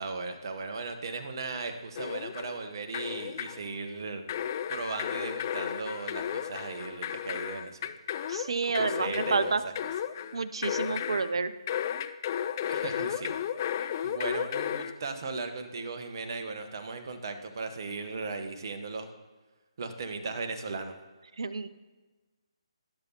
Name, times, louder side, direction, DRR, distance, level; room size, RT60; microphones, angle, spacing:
voice 1, 0.0-4.2 4.7-7.9 8.6-9.7 12.7-13.3 13.8-19.1 19.8-20.9, right 4 dB, 45° right, 7 dB, 1.1 m, -37 dB
sound 1, 1.9-2.6 2.9-3.6 4.3-11.3 11.7-14.9, left 9 dB, 35° left, 0.4 m, -33 dB
voice 2, 8.3-9.6 10.3-11.5 21.4-21.7, right 4 dB, 60° right, 13 dB, 0.6 m, -29 dB
15.0 x 6.9 x 3.0 m, 1.3 s
figure-of-eight pair, 145°, 3 cm